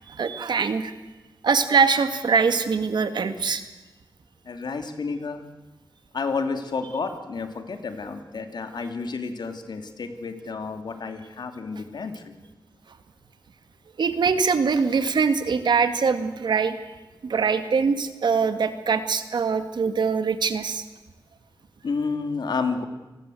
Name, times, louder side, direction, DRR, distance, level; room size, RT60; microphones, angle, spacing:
voice 1, 0.1-0.9 1.4-3.6 14.0-16.8 17.2-20.8, right 5 dB, 80° right, 9 dB, 2.1 m, -23 dB
voice 2, 4.4-5.4 6.1-12.3 21.8-22.9, left 4 dB, 75° left, 7 dB, 2.7 m, -30 dB
29.0 x 20.5 x 7.8 m, 1.1 s
wide cardioid pair, 140°, 8 cm